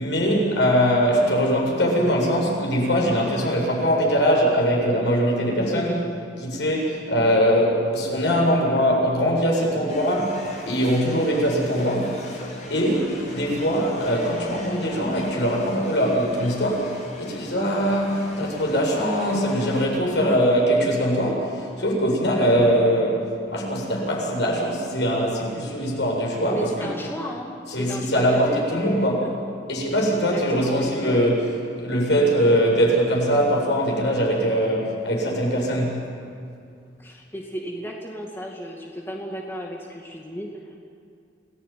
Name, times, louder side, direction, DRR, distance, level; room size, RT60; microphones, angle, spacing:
voice 1, 0.0-5.9 6.4-10.4 10.7-12.4 12.7-23.2 23.5-26.9 27.7-29.3 29.7-36.0, equal, 75° left, -2 dB, 7.9 m, -22 dB
voice 2, 5.6-6.1 8.8-9.0 20.1-20.4 22.6-22.7 26.5-27.5 27.8-29.3 30.1-30.9 37.0-40.8, equal, 15° left, -1 dB, 2.3 m, -34 dB
sound 1, 9.9-19.8, left 1 dB, 40° left, 6.1 m, -41 dB
28.0 x 18.5 x 9.4 m, 2.4 s
head